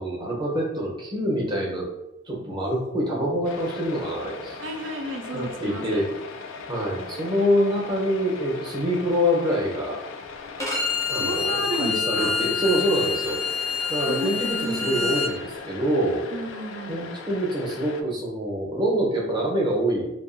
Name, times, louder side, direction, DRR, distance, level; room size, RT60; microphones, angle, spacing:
voice 1, 0.0-1.9 2.2-4.6 5.3-6.1 6.7-10.0 11.1-13.4 13.9-16.2 16.9-20.1, equal, 25° right, -4 dB, 0.7 m, -25 dB
sound 1, 3.4-11.6 12.1-18.0, left 4 dB, 75° left, 0.3 m, -39 dB
voice 2, 4.6-6.1 11.2-12.5 14.1-14.3 14.6-15.3 16.3-17.1, right 2 dB, 70° right, 2 dB, 0.5 m, -33 dB
Bowed string instrument, 10.6-15.3, left 5 dB, 15° left, 0.5 m, -27 dB
2.6 x 2.4 x 2.5 m, 0.89 s
head